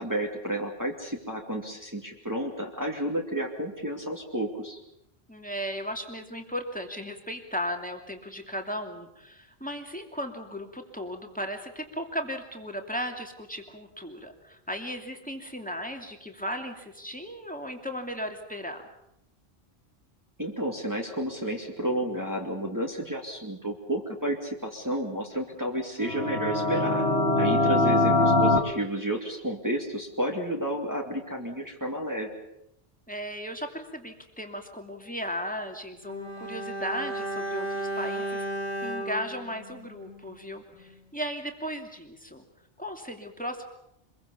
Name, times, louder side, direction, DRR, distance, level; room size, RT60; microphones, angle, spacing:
voice 1, 0.0-4.8 20.4-27.1 27.4-32.3, right 1 dB, 15° right, 0 dB, 2.7 m, -31 dB
voice 2, 5.3-18.8 33.1-38.5 38.8-42.4 42.8-43.6, equal, 5° left, 3 dB, 2.7 m, -36 dB
sound 1, 26.0-28.6, left 2 dB, 70° left, 2.3 m, -22 dB
Bowed string instrument, 36.0-40.5 40.7-40.9, right 1 dB, 45° right, 6.9 m, -34 dB
25.5 x 22.0 x 7.1 m, 0.80 s
omnidirectional pair, 1.1 m